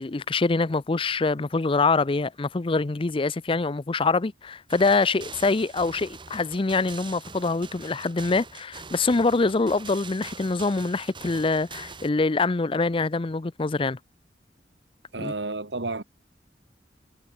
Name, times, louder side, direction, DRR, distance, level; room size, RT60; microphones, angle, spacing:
voice 1, 0.0-14.0 15.2-15.3, left 3 dB, 30° left, 0.5 m, -25 dB
sound 1, 4.7-12.1, right 4 dB, 30° right, 4.3 m, -43 dB
voice 2, 15.1-16.0, right 3 dB, 80° right, 1.9 m, -31 dB
head